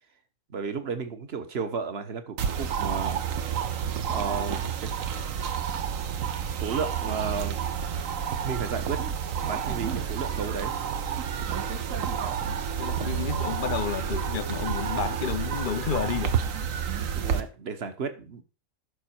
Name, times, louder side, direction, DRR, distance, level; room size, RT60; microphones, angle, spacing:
voice 1, 0.5-3.2 4.1-5.1 6.5-7.7 8.4-9.0 9.4-10.7 17.1-18.4, right 5 dB, 50° right, 1.3 m, -33 dB
sound 1, 2.4-17.4, right 8 dB, 75° right, 1.3 m, -30 dB
voice 2, 12.5-16.4, left 9 dB, 50° left, 0.7 m, -31 dB
11.5 x 6.2 x 4.5 m
omnidirectional pair, 1.4 m